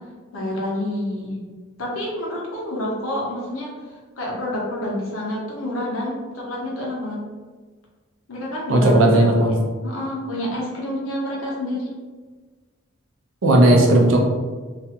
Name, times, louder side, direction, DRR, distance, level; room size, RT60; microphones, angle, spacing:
voice 1, 0.3-1.4 1.8-3.7 4.2-7.2 8.3-9.5 9.8-11.9, left 1 dB, 85° left, -4 dB, 0.8 m, -28 dB
voice 2, 8.7-9.6 13.4-14.2, right 1 dB, 75° right, 1 dB, 0.5 m, -15 dB
2.4 x 2.3 x 2.8 m, 1.4 s
head